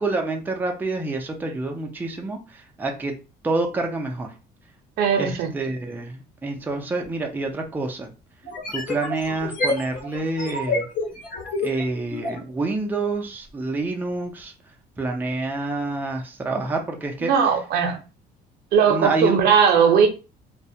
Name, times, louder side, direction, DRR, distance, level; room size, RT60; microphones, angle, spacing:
voice 1, 0.0-3.1 3.4-4.3 5.2-8.1 8.7-10.9 11.6-17.3 18.8-19.4, right 3 dB, 10° right, 0.4 m, -27 dB
voice 2, 5.0-5.5 17.2-18.0 18.7-20.1, right 7 dB, 70° right, 0.6 m, -18 dB
sound 1, 7.0-7.1 8.4-12.4, left 2 dB, 50° left, 1.0 m, -28 dB
2.3 x 2.1 x 2.7 m
cardioid pair, 110°, 17 cm